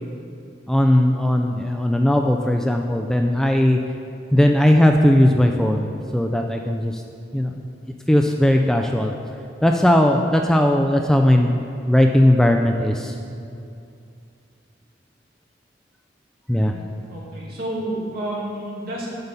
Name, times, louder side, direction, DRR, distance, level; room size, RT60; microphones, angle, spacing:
voice 1, 0.7-3.8 4.3-7.0 7.3-7.7 8.1-9.1 9.6-11.6 11.9-13.2 16.5-16.7, left 1 dB, 5° left, 3 dB, 0.3 m, -18 dB
voice 2, 17.1-19.1, right 1 dB, 55° right, -5 dB, 2.4 m, -30 dB
8.1 x 5.5 x 6.7 m, 2.5 s
head